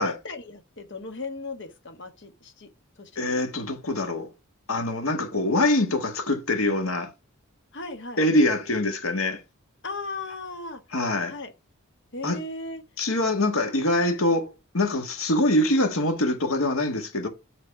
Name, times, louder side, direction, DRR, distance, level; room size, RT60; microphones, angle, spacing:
voice 1, 0.0-2.7 3.0-3.5 7.7-8.2 9.8-10.8 11.3-11.5 12.1-12.8, left 2 dB, 55° left, 1.4 m, -36 dB
voice 2, 3.1-4.3 4.7-7.1 8.2-9.4 10.9-11.3 12.2-12.4 13.0-17.3, left 1 dB, 75° left, 1.7 m, -24 dB
7.8 x 4.0 x 4.8 m
head